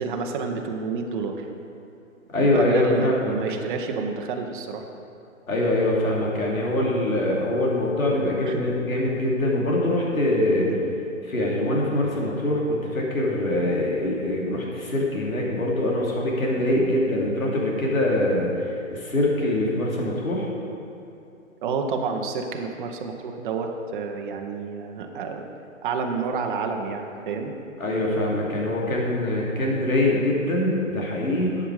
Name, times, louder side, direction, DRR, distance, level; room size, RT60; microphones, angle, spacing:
voice 1, 0.0-1.5 2.4-4.9 8.4-8.7 10.5-10.8 16.6-16.9 21.6-25.5 25.8-27.5, right 5 dB, 40° right, 3 dB, 0.9 m, -29 dB
voice 2, 2.3-3.4 5.5-10.7 11.2-20.5 27.8-31.6, left 1 dB, 85° left, -3 dB, 2.6 m, -23 dB
11.0 x 8.0 x 4.8 m, 2.7 s
hypercardioid pair, 145°, 40 cm